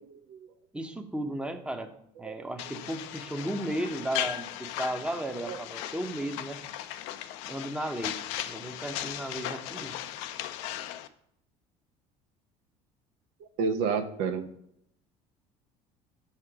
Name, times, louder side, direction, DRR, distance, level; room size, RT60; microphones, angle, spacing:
voice 1, 0.7-1.9 2.2-6.6 7.5-8.2 8.4-10.0, right 1 dB, 5° right, 6 dB, 0.8 m, -34 dB
sound 1, 2.6-11.1, left 12 dB, 80° left, 0.4 m, -37 dB
voice 2, 13.4-14.5, right 5 dB, 80° right, 8 dB, 0.7 m, -30 dB
5.8 x 4.4 x 4.8 m, 0.74 s
supercardioid pair, 85°, 16 cm